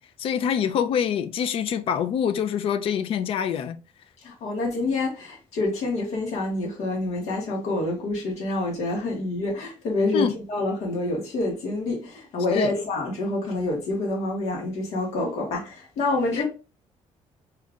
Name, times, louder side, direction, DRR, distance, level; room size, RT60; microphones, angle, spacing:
voice 1, 0.2-3.8 10.1-10.3 12.5-12.7 16.3-16.4, left 8 dB, 50° left, 0.4 m, -25 dB
voice 2, 4.2-16.4, left 2 dB, 70° left, 1.7 m, -27 dB
4.4 x 2.4 x 3.6 m
cardioid pair, 175°, 12 cm